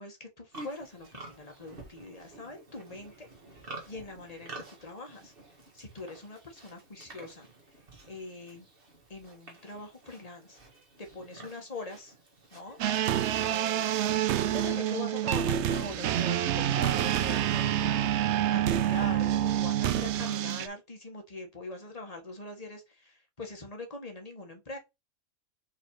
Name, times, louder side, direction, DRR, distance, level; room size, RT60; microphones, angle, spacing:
voice 1, 0.0-3.3 3.6-5.3 5.7-7.5 8.1-8.7 9.1-10.6 11.0-12.1 12.5-12.8 13.4-24.8, left 2 dB, 30° left, 1.6 m, -43 dB
Livestock farm animals working animals, 0.5-14.2, right 2 dB, 45° right, 2.1 m, -49 dB
sound 1, 12.8-20.7, right 11 dB, 65° right, 0.8 m, -27 dB
5.1 x 4.2 x 4.7 m
omnidirectional pair, 1.4 m